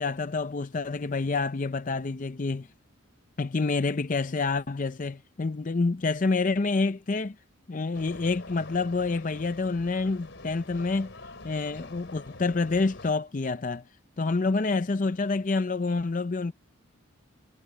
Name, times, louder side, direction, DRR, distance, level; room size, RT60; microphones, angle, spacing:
voice 1, 0.0-2.7 3.4-7.4 7.7-11.1 11.4-13.8 14.2-16.5, left 3 dB, 40° left, 0.5 m, -28 dB
sound 1, 7.9-13.1, left 2 dB, 60° left, 4.6 m, -46 dB
head